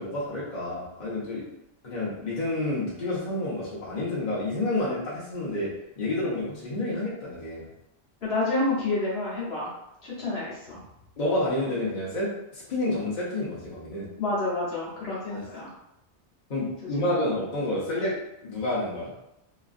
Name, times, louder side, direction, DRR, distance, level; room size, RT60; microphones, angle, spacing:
voice 1, 0.0-1.4 1.8-5.7 6.0-7.6 11.2-14.1 15.3-15.4 16.5-18.1 18.4-19.1, left 1 dB, 45° left, -7 dB, 0.9 m, -29 dB
voice 2, 8.2-9.7 10.0-10.8 14.2-15.7 17.0-17.1, left 2 dB, 65° left, -7 dB, 1.2 m, -29 dB
3.0 x 2.5 x 2.4 m, 0.85 s
omnidirectional pair, 1.1 m